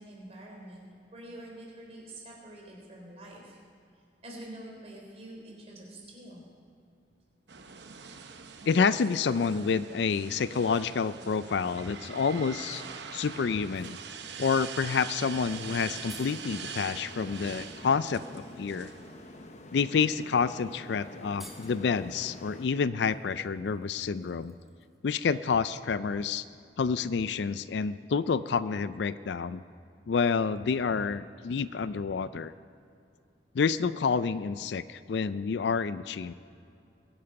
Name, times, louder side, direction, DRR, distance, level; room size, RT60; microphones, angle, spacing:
voice 1, 0.0-3.6 4.2-6.5, right 1 dB, 35° right, -1 dB, 3.7 m, -46 dB
sound 1, 7.5-19.5, right 6 dB, 65° right, 0.8 m, -43 dB
voice 2, 8.6-12.8 13.1-14.0 14.4-18.9 19.7-24.5 25.0-26.4 26.8-29.6 30.1-32.5 33.5-36.3, left 5 dB, 65° left, 15 dB, 0.4 m, -28 dB
sound 2, 13.6-14.0 15.5-15.6 15.8-16.5 17.9-18.0 18.6-18.9 19.7-19.8 20.2-20.4 20.6-20.7 21.2-22.0 23.1-25.1 25.4-25.5, right 1 dB, ahead, 1.5 m, -54 dB
sound 3, 15.4-22.7, left 2 dB, 35° left, 0.8 m, -48 dB
21.5 x 8.8 x 5.9 m, 2.5 s
head